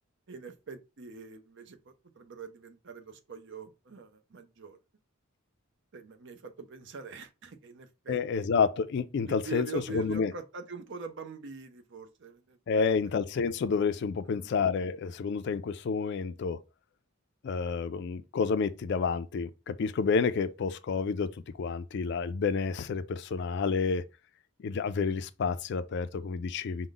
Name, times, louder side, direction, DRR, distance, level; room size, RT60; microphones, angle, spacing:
voice 1, 0.3-4.8 5.9-8.6 9.3-12.9 14.2-14.5, right 5 dB, 60° right, 0.6 m, -44 dB
voice 2, 8.1-10.3 12.7-16.6 17.4-24.0 24.6-26.9, left 5 dB, 55° left, 0.3 m, -29 dB
4.9 x 2.1 x 3.8 m
head